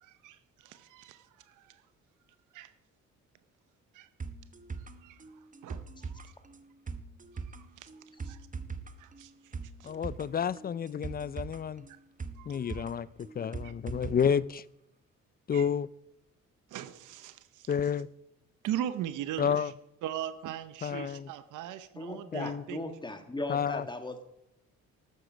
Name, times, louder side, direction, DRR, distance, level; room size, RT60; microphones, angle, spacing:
voice 1, 0.0-1.8 2.5-2.7 3.9-4.1 4.8-5.2 5.6-6.3 7.8-8.5 9.0-9.5 9.8-9.9 12.4-12.8 13.6-13.7 15.5-15.7 16.7-17.7 18.6-19.7 20.0-22.8, right 11 dB, 85° right, 12 dB, 0.8 m, -40 dB
sound 1, 4.2-14.2 14.5-14.6, right 4 dB, 25° right, 1.0 m, -42 dB
voice 2, 9.8-11.9 12.5-14.6 15.5-15.9 17.7-18.1 19.4-19.7 20.8-21.3 22.3-22.6 23.5-23.8, left 7 dB, 30° left, 21 dB, 0.4 m, -30 dB
voice 3, 22.0-24.2, left 2 dB, 15° left, 7 dB, 1.6 m, -37 dB
13.0 x 9.4 x 5.1 m, 0.83 s
cardioid pair, 90°, 30 cm